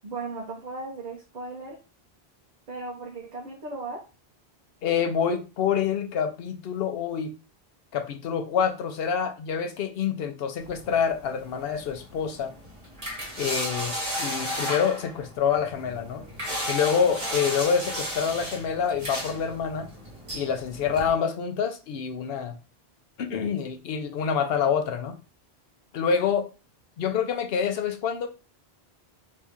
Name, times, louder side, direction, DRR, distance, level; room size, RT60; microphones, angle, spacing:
voice 1, 0.0-1.8 2.7-4.0 17.2-17.3, right 3 dB, 50° right, 0.8 m, -36 dB
voice 2, 4.8-7.3 7.9-12.5 13.4-16.2 16.7-19.9 20.3-22.6 23.2-25.2 25.9-26.5 27.0-28.3, left 7 dB, 75° left, 0.8 m, -27 dB
sound 1, 10.6-21.1, equal, 30° right, 1.3 m, -34 dB
2.9 x 2.7 x 3.5 m
omnidirectional pair, 1.0 m